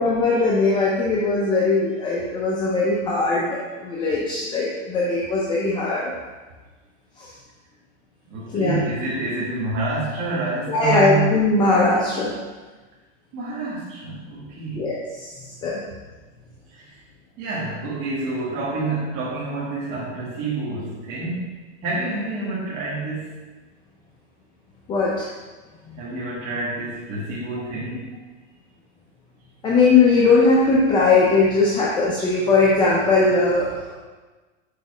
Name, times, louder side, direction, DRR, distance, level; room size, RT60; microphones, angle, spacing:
voice 1, 0.0-6.1 7.2-7.3 8.5-8.9 10.7-12.3 14.7-15.3 15.6-15.8 24.9-25.3 25.9-26.0 29.6-33.9, left 3 dB, 10° left, -5 dB, 0.5 m, -19 dB
voice 2, 8.3-11.2 13.3-14.9 16.7-16.9 17.4-21.5 21.8-23.3 26.0-28.0, right 3 dB, 35° right, -7 dB, 1.6 m, -28 dB
6.6 x 3.9 x 4.8 m, 1.3 s
supercardioid pair, 145°, 38 cm